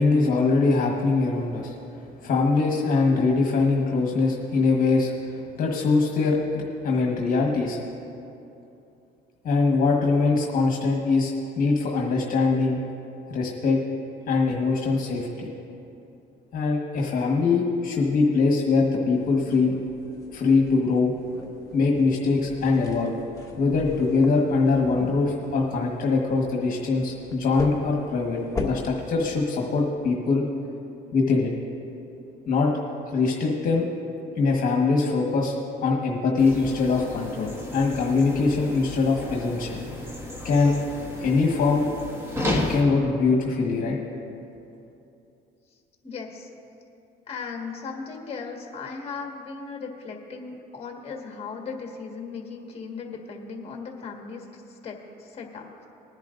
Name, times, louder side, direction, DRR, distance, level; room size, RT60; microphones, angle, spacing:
voice 1, 0.0-1.7 2.2-5.1 5.6-7.8 9.4-11.3 11.6-12.8 13.3-13.8 14.3-15.5 16.5-19.8 20.3-21.1 21.7-23.1 23.6-30.4 31.1-31.5 32.5-32.7 33.1-33.9 34.4-35.5 35.8-39.8 40.4-40.8 41.2-41.8 42.7-44.0, left 4 dB, 55° left, 0 dB, 1.4 m, -22 dB
sound 1, 19.1-28.9, left 3 dB, 20° left, 1.4 m, -39 dB
sound 2, 36.4-42.8, left 1 dB, 15° right, 1.7 m, -33 dB
voice 2, 46.0-46.5 47.3-55.9, left 5 dB, 35° left, 1 dB, 1.7 m, -37 dB
20.0 x 10.5 x 2.6 m, 2.7 s
cardioid pair, 110°, 17 cm